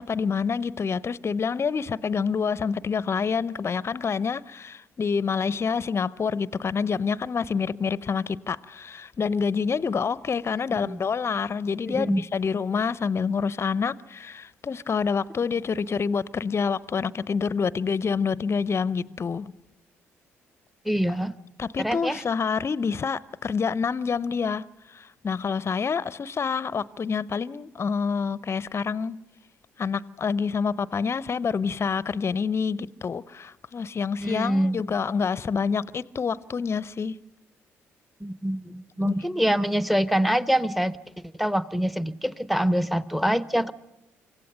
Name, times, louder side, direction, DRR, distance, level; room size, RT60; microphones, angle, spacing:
voice 1, 0.0-19.5 21.6-29.2 29.8-37.2 39.0-39.1, left 5 dB, 40° left, 0.6 m, -27 dB
voice 2, 11.9-12.2 20.9-21.3 21.8-22.2 34.2-34.9 38.2-41.0 41.4-43.7, equal, ahead, 0.9 m, -25 dB
26.0 x 15.5 x 6.7 m
hypercardioid pair, 45°, 7 cm